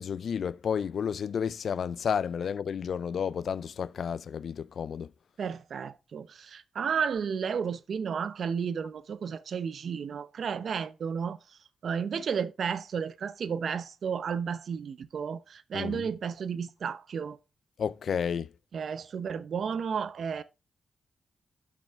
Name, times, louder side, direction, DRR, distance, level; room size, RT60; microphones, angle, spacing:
voice 1, 0.0-5.1 15.7-16.0 17.8-18.5, left 7 dB, 70° left, 0.4 m, -31 dB
voice 2, 5.4-11.4 11.8-17.4 18.7-20.4, right 6 dB, 70° right, 0.8 m, -32 dB
12.0 x 6.1 x 3.6 m
cardioid pair, 75°, 0 cm